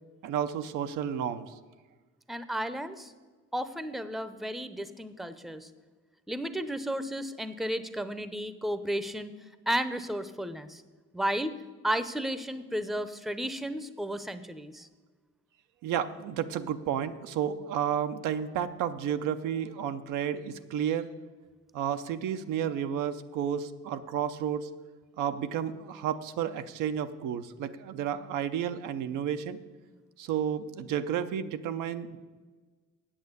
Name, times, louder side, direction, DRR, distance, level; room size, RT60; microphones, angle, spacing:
voice 1, 0.2-1.5 15.8-21.1 21.7-24.7 25.2-29.6 30.2-32.2, right 9 dB, 90° right, 9 dB, 0.7 m, -31 dB
voice 2, 2.3-3.1 3.5-5.7 6.3-9.3 9.7-10.8 11.1-14.9, equal, ahead, 12 dB, 0.6 m, -33 dB
8.8 x 7.5 x 8.1 m, 1.4 s
cardioid pair, 90°, 30 cm